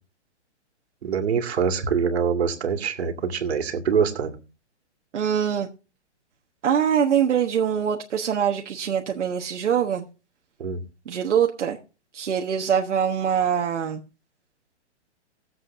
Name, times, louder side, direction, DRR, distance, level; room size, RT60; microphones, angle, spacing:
voice 1, 1.0-4.3 10.6-10.8, right 6 dB, 65° right, 2.2 m, -24 dB
voice 2, 5.1-5.7 6.6-10.0 11.1-11.8 12.1-14.0, right 8 dB, 85° right, 1.3 m, -23 dB
18.5 x 7.7 x 2.6 m
hypercardioid pair, 165°, 35 cm